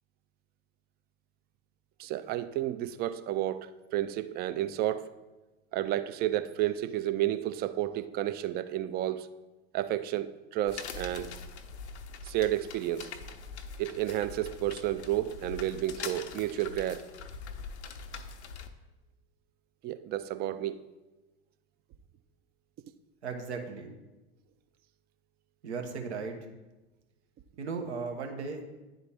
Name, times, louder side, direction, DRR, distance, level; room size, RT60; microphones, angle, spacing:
voice 1, 2.0-5.1 5.7-9.3 9.7-11.3 12.2-13.1 13.8-17.1 19.8-20.8, right 13 dB, 30° right, 0.3 m, -31 dB
sound 1, 10.7-18.7, left 5 dB, 85° left, 0.6 m, -43 dB
voice 2, 23.2-23.9 25.6-26.4 27.6-28.6, right 5 dB, 80° right, 1.0 m, -36 dB
10.0 x 4.0 x 3.4 m
hypercardioid pair, 85°, 33 cm